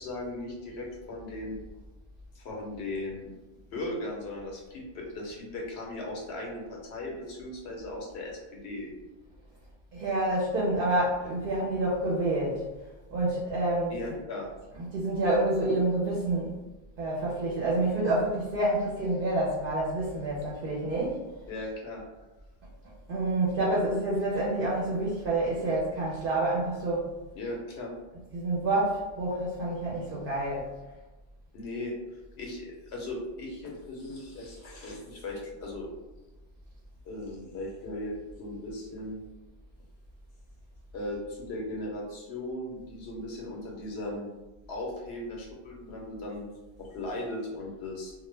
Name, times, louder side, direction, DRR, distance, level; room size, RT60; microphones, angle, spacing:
voice 1, 0.0-1.6 2.3-3.3 3.7-8.9 13.9-14.5 21.5-22.0 27.3-27.9 31.5-31.9 32.4-35.9 37.0-39.2 40.9-44.3 44.7-46.5 46.8-48.1, left 1 dB, 85° left, -1 dB, 0.9 m, -37 dB
voice 2, 9.9-12.7 13.1-13.9 14.8-16.5 17.0-21.2 23.1-27.1 28.3-30.7, right 2 dB, 65° right, -6 dB, 0.7 m, -28 dB
2.1 x 2.1 x 3.1 m, 1.1 s
omnidirectional pair, 1.1 m